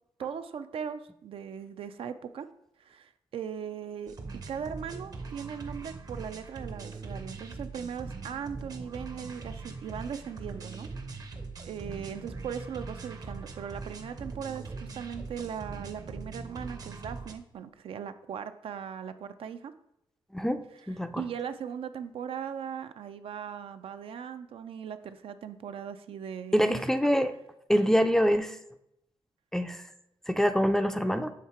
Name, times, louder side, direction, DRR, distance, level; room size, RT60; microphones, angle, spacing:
voice 1, 0.2-2.5 2.8-4.1 4.5-10.9 11.6-19.7 21.2-26.8, right 7 dB, 75° right, 10 dB, 0.4 m, -39 dB
sound 1, 4.1-17.3, right 4 dB, 40° right, 0.7 m, -41 dB
voice 2, 20.3-21.2 26.5-27.3 27.7-28.6 29.5-29.8 30.3-31.3, equal, 5° left, 9 dB, 0.3 m, -25 dB
7.3 x 3.7 x 4.3 m, 0.81 s
wide cardioid pair, 140°, 10 cm